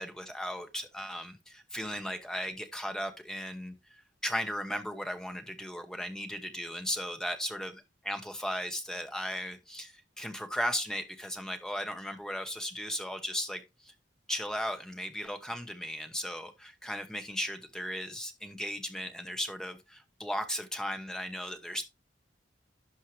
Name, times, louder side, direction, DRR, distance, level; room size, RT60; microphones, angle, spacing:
voice 1, 0.0-13.9 14.3-21.9, equal, 5° left, 0.9 m, -36 dB
12.0 x 4.5 x 3.2 m
head